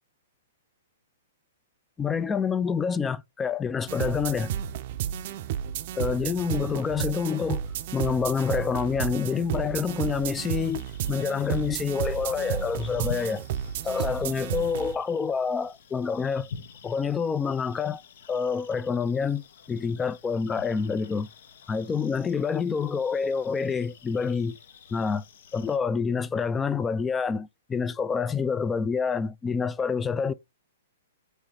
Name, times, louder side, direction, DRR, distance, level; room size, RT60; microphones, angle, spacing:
voice 1, 2.0-4.5 6.0-13.5 13.8-16.5 16.8-18.0 18.3-21.3 21.7-24.6 24.9-25.2 25.5-30.3, left 6 dB, 15° left, 0.3 m, -27 dB
sound 1, 3.9-14.9, right 9 dB, 50° right, 0.5 m, -32 dB
sound 2, 10.1-25.8, left 6 dB, 65° left, 0.7 m, -48 dB
4.8 x 3.1 x 2.6 m
hypercardioid pair, 125°, 0 cm